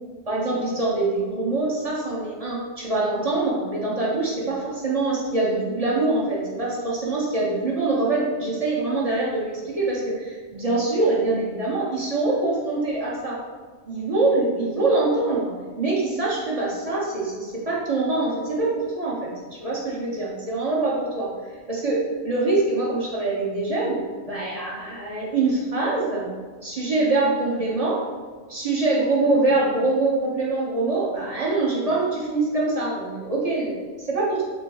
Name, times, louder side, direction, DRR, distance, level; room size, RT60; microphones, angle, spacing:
voice 1, 0.3-13.4 13.9-18.7 19.0-19.3 19.6-21.3 21.7-24.0 24.3-26.3 26.6-28.0 28.5-34.4, right 2 dB, 30° right, -5 dB, 1.0 m, -24 dB
5.2 x 2.1 x 4.7 m, 1.4 s
omnidirectional pair, 1.3 m